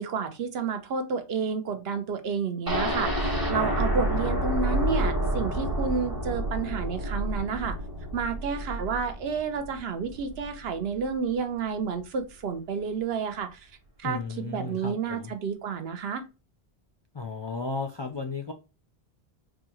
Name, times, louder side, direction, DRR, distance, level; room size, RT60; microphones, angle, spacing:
voice 1, 0.0-7.8 8.1-13.7 14.0-16.2, right 6 dB, 75° right, 8 dB, 0.9 m, -30 dB
sound 1, 2.7-10.5 10.9-11.0 11.3-11.4, right 1 dB, 20° right, 1.2 m, -29 dB
voice 2, 14.0-15.3 17.1-18.5, left 3 dB, 50° left, 3 dB, 0.3 m, -34 dB
4.0 x 2.4 x 2.9 m, 0.30 s
omnidirectional pair, 1.1 m